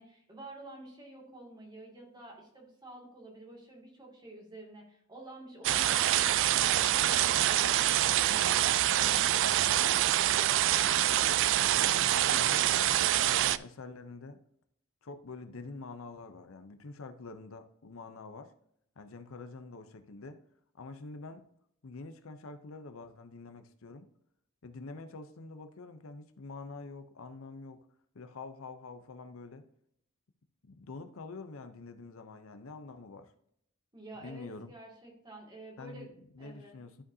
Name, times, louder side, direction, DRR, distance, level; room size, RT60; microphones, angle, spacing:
voice 1, 0.0-11.0 33.9-36.1 36.4-36.8, right 2 dB, 20° right, -2 dB, 2.2 m, -50 dB
sound 1, 5.6-13.6, right 12 dB, 60° right, 0.3 m, -26 dB
voice 2, 11.6-14.4 15.0-18.5 19.0-20.4 20.7-21.5 21.8-24.1 24.6-27.9 28.1-29.6 30.6-33.3 34.2-34.7 35.8-37.0, left 3 dB, 70° left, 9 dB, 0.6 m, -46 dB
12.5 x 5.1 x 2.7 m, 0.71 s
head